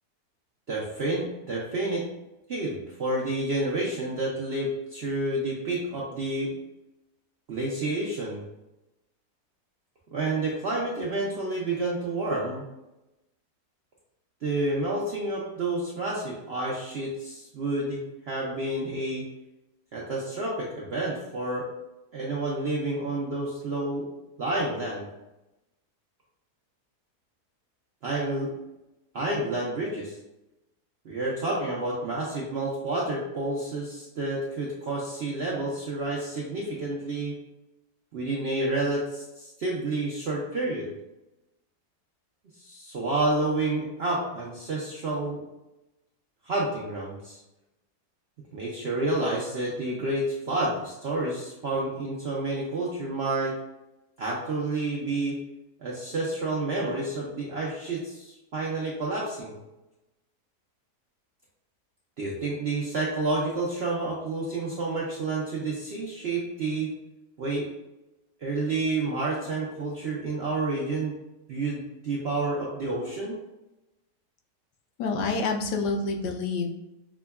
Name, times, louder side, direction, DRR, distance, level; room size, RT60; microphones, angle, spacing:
voice 1, 0.7-2.1 2.5-6.5 7.5-8.4 10.1-12.7 14.4-19.3 19.9-21.7 22.1-24.1 24.4-25.1 28.0-28.5 29.1-30.2 31.0-37.4 38.1-40.9 42.6-45.4 46.4-47.4 48.5-53.5 54.2-55.4 55.8-59.6 62.2-66.9 67.4-67.7 68.4-71.2 71.5-73.4, right 2 dB, 65° right, -4 dB, 0.6 m, -29 dB
voice 2, 75.0-76.7, left 3 dB, 90° left, 2 dB, 1.2 m, -27 dB
6.0 x 2.2 x 2.3 m, 0.96 s
omnidirectional pair, 1.7 m